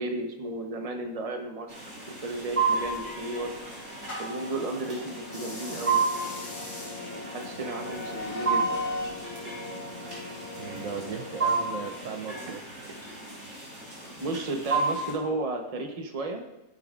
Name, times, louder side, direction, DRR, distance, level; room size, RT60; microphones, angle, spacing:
voice 1, 0.0-1.8 2.2-3.5 4.2-6.0 7.1-8.8 12.4-12.5 14.2-16.4, right 2 dB, 25° right, 4 dB, 1.0 m, -33 dB
sound 1, 1.7-15.1, right 4 dB, 50° right, 3.9 m, -32 dB
sound 2, 2.7-4.5 5.2-9.2, left 2 dB, 90° left, 3.2 m, -39 dB
sound 3, 4.7-12.5, left 3 dB, 40° left, 1.6 m, -42 dB
voice 2, 10.6-12.6, right 6 dB, 65° right, 5 dB, 1.0 m, -37 dB
15.0 x 7.7 x 2.5 m, 0.97 s
omnidirectional pair, 1.6 m